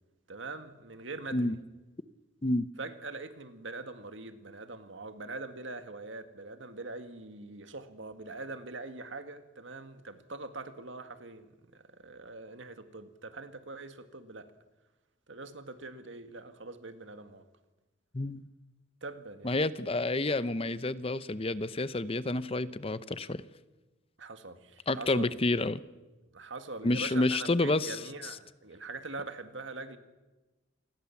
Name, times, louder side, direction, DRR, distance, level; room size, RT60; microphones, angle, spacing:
voice 1, 0.3-1.6 2.8-14.5 15.3-17.4 19.0-19.6 24.2-25.4 26.3-30.0, right 3 dB, 75° right, 1.9 m, -43 dB
voice 2, 19.4-23.4 24.9-25.8 26.8-28.0, left 2 dB, 30° left, 0.7 m, -29 dB
28.5 x 20.0 x 7.2 m
head